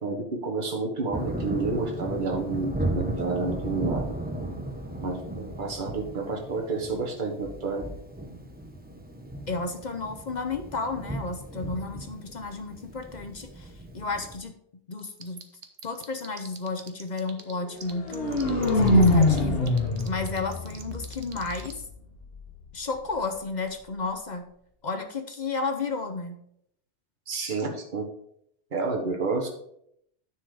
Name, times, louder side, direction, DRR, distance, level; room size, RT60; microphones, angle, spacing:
voice 1, 0.0-4.1 5.0-7.8 27.3-28.0 28.7-29.5, right 3 dB, 45° right, 1 dB, 1.5 m, -30 dB
Thunder, 1.1-14.4, right 1 dB, 10° right, 1.0 m, -35 dB
voice 2, 9.5-14.5 14.9-15.4 15.8-19.7 20.0-21.8 22.7-24.5 24.8-26.4, left 3 dB, 45° left, 7 dB, 0.8 m, -33 dB
sound 1, 15.0-17.5 17.8-21.7, right 8 dB, 70° right, 1.2 m, -43 dB
sound 2, 17.8-21.8, left 1 dB, 60° left, 1.5 m, -23 dB
9.7 x 4.7 x 4.9 m, 0.72 s
omnidirectional pair, 1.2 m